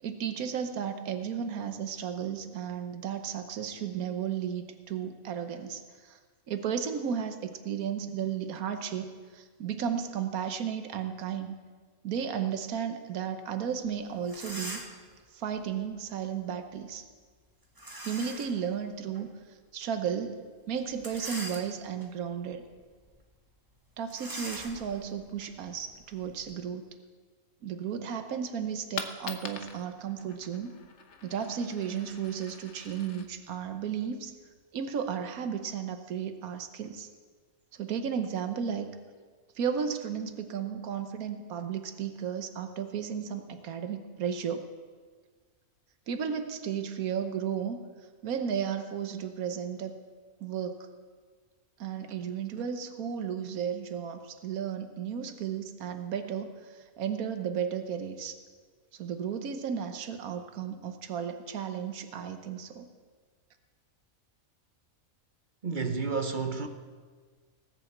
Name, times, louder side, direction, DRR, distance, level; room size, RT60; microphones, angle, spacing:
voice 1, 0.0-6.2 6.5-11.5 12.0-14.8 15.3-17.0 18.0-19.3 19.7-20.4 20.7-22.6 24.0-26.8 27.6-30.7 31.2-34.3 34.7-37.1 37.7-38.9 39.5-44.7 46.1-47.8 48.2-50.0 50.4-50.8 51.8-58.4 58.9-62.9, right 7 dB, 80° right, 1.4 m, -34 dB
sound 1, 13.9-14.0 14.2-15.1 17.8-18.6 19.2-19.3 20.9-22.0 22.6-22.8 23.1-23.2 24.1-26.5, right 1 dB, 15° right, 1.2 m, -42 dB
Coin (dropping), 28.6-34.6, left 6 dB, 55° left, 1.2 m, -45 dB
voice 2, 65.6-66.7, right 4 dB, 40° right, 0.8 m, -30 dB
18.5 x 7.0 x 7.8 m
omnidirectional pair, 1.5 m